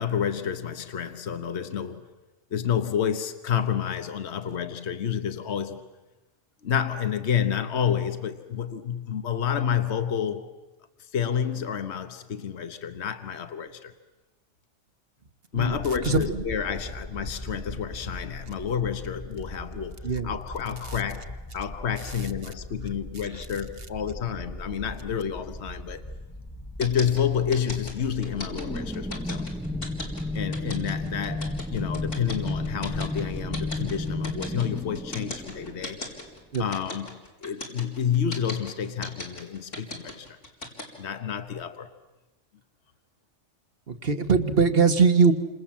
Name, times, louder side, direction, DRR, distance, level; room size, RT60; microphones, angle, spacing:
voice 1, 0.0-2.1 2.5-5.8 6.6-10.4 11.1-13.9 15.5-20.0 20.2-26.1 26.8-29.5 30.3-36.0 36.6-40.4 41.0-41.9, left 8 dB, 65° left, 9 dB, 1.4 m, -29 dB
voice 2, 15.5-16.4 20.0-20.3 36.5-36.7 43.9-45.3, right 5 dB, 55° right, 8 dB, 1.7 m, -22 dB
sound 1, 15.6-33.8, equal, 15° left, 1.2 m, -41 dB
sound 2, 26.8-40.8, left 2 dB, 90° left, 4.7 m, -37 dB
sound 3, 28.1-36.4, left 2 dB, 5° right, 0.8 m, -33 dB
29.0 x 27.0 x 7.5 m, 1.1 s
omnidirectional pair, 1.2 m